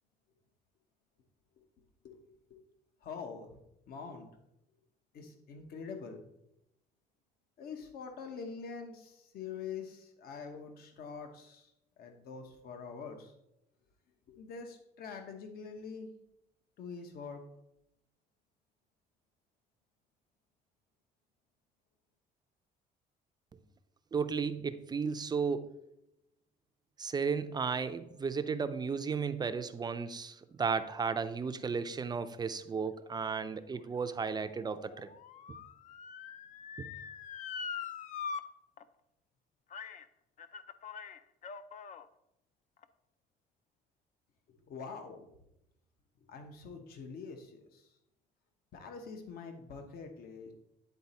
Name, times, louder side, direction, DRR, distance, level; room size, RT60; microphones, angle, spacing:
voice 1, 3.0-3.6 3.9-4.3 5.1-6.2 7.6-11.7 12.0-13.3 14.3-16.1 16.8-17.4 44.7-45.3 46.3-47.9 48.7-50.5, left 5 dB, 65° left, 5 dB, 1.0 m, -45 dB
voice 2, 24.1-25.7 27.0-35.1 36.8-36.9, right 5 dB, 25° right, 11 dB, 0.4 m, -34 dB
Motor vehicle (road) / Siren, 33.5-38.4 38.8-38.9 39.7-40.0 40.4-42.1 42.8-42.9, left 6 dB, 50° left, 0.5 m, -43 dB
9.4 x 4.0 x 4.2 m, 0.83 s
cardioid pair, 110°, 17 cm